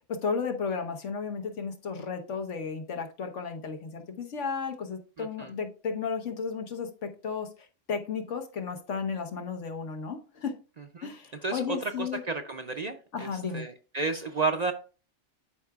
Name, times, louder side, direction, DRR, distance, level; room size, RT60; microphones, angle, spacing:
voice 1, 0.1-7.5 7.9-10.5 11.0-12.2 13.1-13.6, left 5 dB, 85° left, 4 dB, 1.4 m, -33 dB
voice 2, 5.2-5.5 11.0-11.1 11.4-14.7, right 3 dB, 50° right, 6 dB, 0.5 m, -32 dB
11.5 x 4.8 x 2.3 m, 0.36 s
omnidirectional pair, 1.2 m